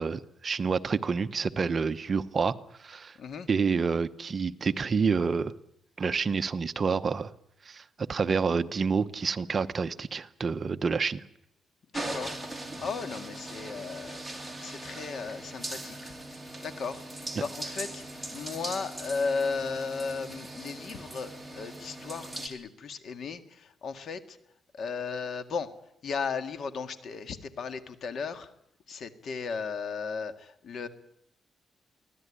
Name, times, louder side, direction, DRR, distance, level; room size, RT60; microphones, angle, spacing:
voice 1, 0.0-2.5 2.8-3.2 3.5-5.5 6.0-7.3 7.6-11.2, right 5 dB, 35° right, 12 dB, 0.9 m, -28 dB
voice 2, 3.2-3.5 11.9-12.4 12.8-14.2 14.6-16.1 16.6-17.0 17.4-24.4 24.7-25.7 26.0-28.5 28.9-30.9, left 5 dB, 60° left, 9 dB, 2.0 m, -35 dB
sound 1, 11.9-22.5, right 1 dB, ahead, 4.0 m, -40 dB
24.0 x 16.5 x 10.0 m, 0.77 s
cardioid pair, 125°, 0 cm